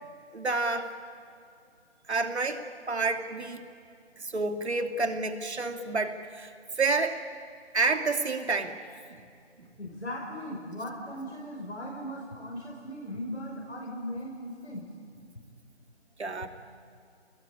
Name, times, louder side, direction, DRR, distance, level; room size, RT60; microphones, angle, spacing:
voice 1, 0.3-0.9 2.1-3.7 4.2-6.5 6.8-7.2 7.7-8.8 9.1-9.2 9.6-9.7 16.2-16.5, right 3 dB, 70° right, 6 dB, 2.7 m, -29 dB
voice 2, 9.8-14.8, equal, 75° left, -2 dB, 6.2 m, -38 dB
27.5 x 20.0 x 9.9 m, 2.3 s
figure-of-eight pair, 165°, 34 cm